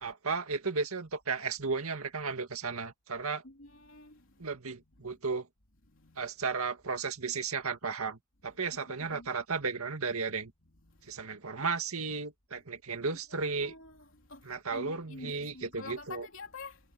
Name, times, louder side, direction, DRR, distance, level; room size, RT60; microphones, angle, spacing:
voice 1, 0.0-3.4 4.4-5.5 6.2-10.5 11.0-13.7 14.4-16.3, right 4 dB, 85° right, 2.0 m, -34 dB
voice 2, 3.4-4.2 5.9-6.3 9.0-9.3 10.8-11.0 13.1-16.8, left 3 dB, 60° left, 3.9 m, -48 dB
head